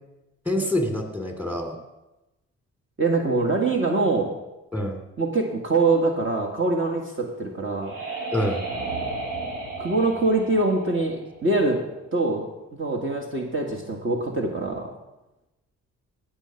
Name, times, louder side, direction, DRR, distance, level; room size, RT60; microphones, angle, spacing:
voice 1, 0.5-1.8 4.7-5.0 8.3-8.6, left 1 dB, 5° right, 4 dB, 2.7 m, -26 dB
voice 2, 3.0-4.3 5.2-7.9 9.8-11.8 12.1-12.5 12.7-14.9, right 3 dB, 40° right, 1 dB, 2.0 m, -24 dB
sound 1, 7.3-11.9, right 3 dB, 80° right, 3.3 m, -34 dB
16.5 x 6.6 x 5.8 m, 0.98 s
supercardioid pair, 55°, 31 cm